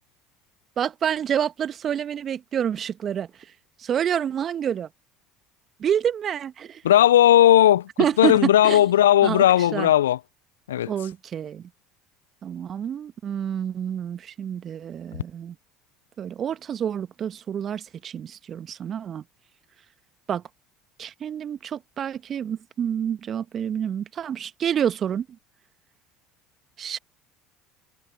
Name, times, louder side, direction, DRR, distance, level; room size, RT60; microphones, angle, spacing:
voice 1, 0.8-3.3 3.8-4.9 5.8-6.8 8.0-8.8 9.2-9.4 9.7-9.9 10.9-11.7 12.4-15.5 16.2-19.2 20.3-20.4 21.0-25.2 26.8-27.0, right 9 dB, 40° right, 1.4 m, -28 dB
voice 2, 6.8-7.9 8.2-10.2 10.7-10.9, left 12 dB, 80° left, 0.3 m, -16 dB
hypercardioid pair, 65°, 0 cm